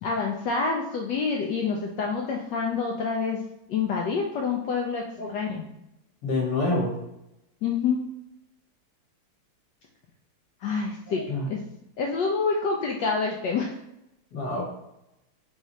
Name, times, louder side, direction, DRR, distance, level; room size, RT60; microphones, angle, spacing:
voice 1, 0.0-3.4 3.7-5.7 7.6-8.0 10.6-11.6 12.0-13.8, left 5 dB, 80° left, 0 dB, 1.0 m, -27 dB
voice 2, 6.2-7.0 11.3-11.5 14.3-14.6, left 2 dB, 55° left, -2 dB, 1.6 m, -26 dB
3.6 x 3.4 x 4.1 m, 0.88 s
omnidirectional pair, 2.4 m